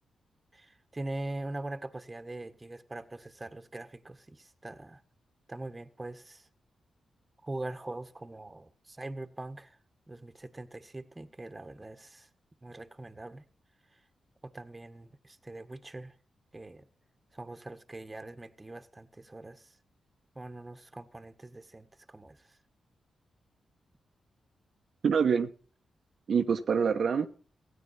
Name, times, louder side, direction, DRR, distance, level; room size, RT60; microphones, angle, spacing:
voice 1, 0.5-5.0 5.5-6.5 7.4-9.8 10.1-12.3 12.6-13.4 14.4-16.1 16.5-16.8 17.3-19.7 20.3-22.6, right 2 dB, 25° right, 1.6 m, -42 dB
voice 2, 25.0-25.5 26.3-27.3, right 6 dB, 65° right, 1.1 m, -25 dB
16.5 x 9.1 x 5.8 m
supercardioid pair, 40°, 0 cm